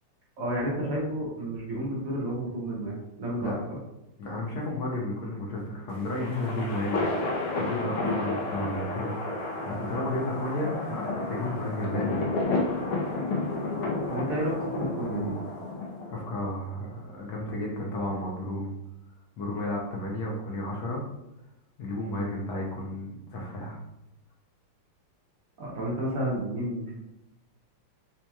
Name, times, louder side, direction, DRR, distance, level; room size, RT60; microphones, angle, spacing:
voice 1, 0.4-3.6 14.1-15.3 25.6-26.8, right 1 dB, 60° right, -4 dB, 0.9 m, -31 dB
voice 2, 4.2-12.2 16.1-18.7 19.4-21.0 21.8-23.8, left 1 dB, 70° left, -3 dB, 0.9 m, -33 dB
sound 1, 5.9-16.4, left 2 dB, 85° left, 1.6 m, -31 dB
4.2 x 2.8 x 2.3 m, 0.92 s
omnidirectional pair, 2.4 m